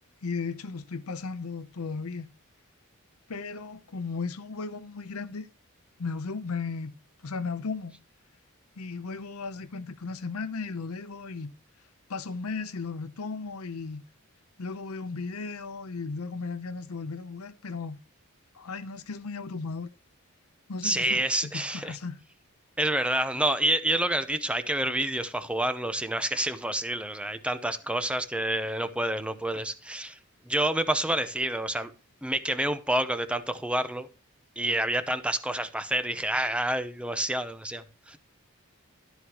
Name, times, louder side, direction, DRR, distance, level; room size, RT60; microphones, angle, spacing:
voice 1, 0.2-2.3 3.3-5.5 6.0-6.9 7.2-8.0 8.8-11.5 12.1-14.0 14.6-18.0 18.5-19.9 20.7-22.2, left 4 dB, 75° left, 0.7 m, -35 dB
voice 2, 20.8-22.0 22.8-30.2 30.5-31.9 32.2-34.1 34.6-38.2, right 1 dB, 5° right, 0.7 m, -28 dB
12.0 x 8.0 x 2.9 m
head